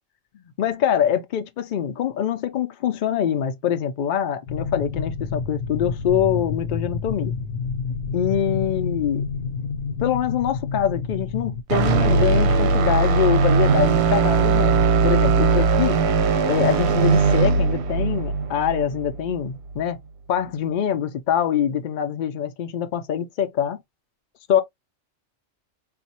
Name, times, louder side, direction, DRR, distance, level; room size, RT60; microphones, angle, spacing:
voice 1, 0.6-7.4 8.1-9.2 10.0-16.0 16.4-20.0 20.3-23.8 24.5-24.6, left 9 dB, 65° left, 0.5 m, -24 dB
sound 1, 4.5-11.6, left 5 dB, 90° left, 1.0 m, -29 dB
sound 2, 11.7-19.8, right 4 dB, 65° right, 0.8 m, -19 dB
4.1 x 2.3 x 2.8 m
omnidirectional pair, 1.3 m